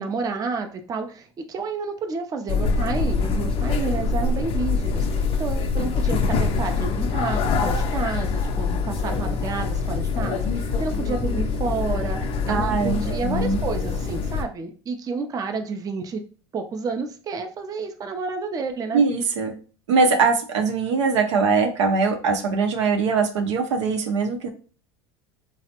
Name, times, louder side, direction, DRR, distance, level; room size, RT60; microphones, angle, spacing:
voice 1, 0.0-16.2 16.5-19.0, right 4 dB, 25° right, 5 dB, 0.4 m, -30 dB
sound 1, 2.5-14.4, left 4 dB, 40° left, 0.4 m, -24 dB
voice 2, 12.5-13.6 18.9-19.5 19.9-24.5, right 4 dB, 90° right, 4 dB, 0.6 m, -22 dB
3.3 x 2.0 x 2.8 m, 0.38 s
supercardioid pair, 100°, 15 cm